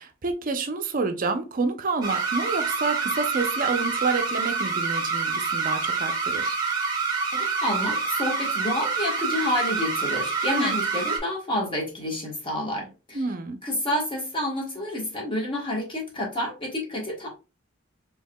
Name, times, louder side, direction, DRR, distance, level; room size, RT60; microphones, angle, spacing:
voice 1, 0.0-6.6 10.5-10.7 13.1-13.6, right 4 dB, 45° right, 0.6 m, -28 dB
sound 1, 2.0-11.2, right 4 dB, 20° right, 1.1 m, -27 dB
voice 2, 7.3-13.2 13.6-17.3, left 1 dB, 25° left, 1.3 m, -29 dB
4.5 x 2.9 x 2.2 m
head